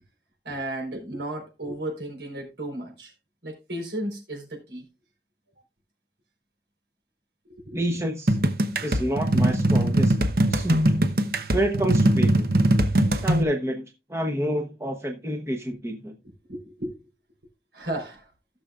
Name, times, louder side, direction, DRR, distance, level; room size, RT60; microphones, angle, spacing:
voice 1, 0.4-3.1 3.4-4.8 7.5-7.8 16.5-16.9 17.7-18.2, right 1 dB, 80° right, 4.2 m, -34 dB
voice 2, 7.8-8.4 8.8-10.1 10.5-10.8 11.5-12.5 13.2-16.1, right 1 dB, 15° right, 0.9 m, -28 dB
sound 1, 8.3-13.4, right 1 dB, 55° right, 1.0 m, -21 dB
16.0 x 6.7 x 2.4 m
head